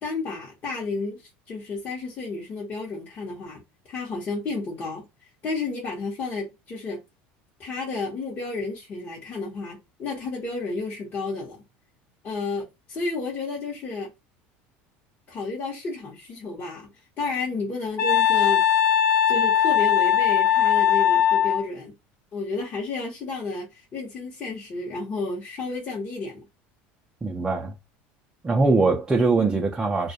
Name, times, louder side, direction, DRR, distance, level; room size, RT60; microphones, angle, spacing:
voice 1, 0.0-7.0 7.6-11.6 12.2-14.1 15.3-16.9 17.2-18.6 19.3-21.9 22.3-26.5, left 3 dB, 40° left, 0.9 m, -32 dB
Wind instrument woodwind instrument, 18.0-21.6, left 9 dB, 60° left, 0.5 m, -20 dB
voice 2, 27.2-27.7 28.4-30.1, right 3 dB, 15° right, 0.4 m, -22 dB
2.3 x 2.1 x 2.7 m
supercardioid pair, 120°, 5 cm